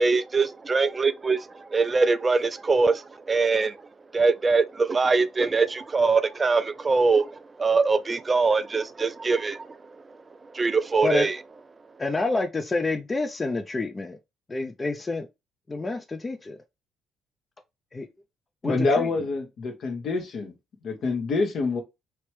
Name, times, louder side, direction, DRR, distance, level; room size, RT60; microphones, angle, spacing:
voice 1, 0.0-10.2 10.5-11.4, right 4 dB, 30° right, 0.3 m, -23 dB
voice 2, 12.0-14.2 14.5-15.3 15.7-16.6 17.9-18.1 18.6-19.1, left 3 dB, 25° left, 0.6 m, -28 dB
voice 3, 18.6-20.5 20.8-21.8, left 3 dB, 55° left, 1.1 m, -26 dB
3.2 x 2.9 x 3.3 m
hypercardioid pair, 50°, 0 cm